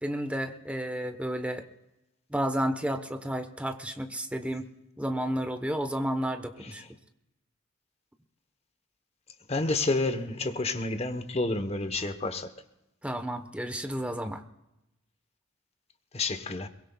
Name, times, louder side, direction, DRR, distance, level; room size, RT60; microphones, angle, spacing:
voice 1, 0.0-1.7 2.3-4.7 5.0-6.8 13.0-14.4, equal, 5° right, 1.0 m, -31 dB
voice 2, 9.5-12.5 16.1-16.7, left 2 dB, 30° left, 1.0 m, -29 dB
22.5 x 22.5 x 2.3 m
head